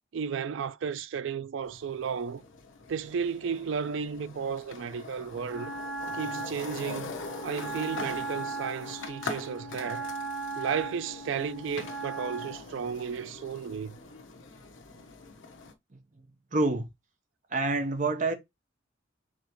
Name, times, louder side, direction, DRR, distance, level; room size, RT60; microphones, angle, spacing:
voice 1, 0.1-2.4 2.9-5.7 6.1-7.2 7.4-10.1 10.6-14.0, right 6 dB, 75° right, 0.4 m, -33 dB
sound 1, 1.6-15.7, left 3 dB, 75° left, 0.9 m, -43 dB
Wind instrument woodwind instrument, 5.4-12.7, right 3 dB, ahead, 1.7 m, -38 dB
voice 2, 16.5-16.9 17.5-18.3, right 2 dB, 40° right, 0.8 m, -27 dB
5.0 x 3.5 x 3.0 m
head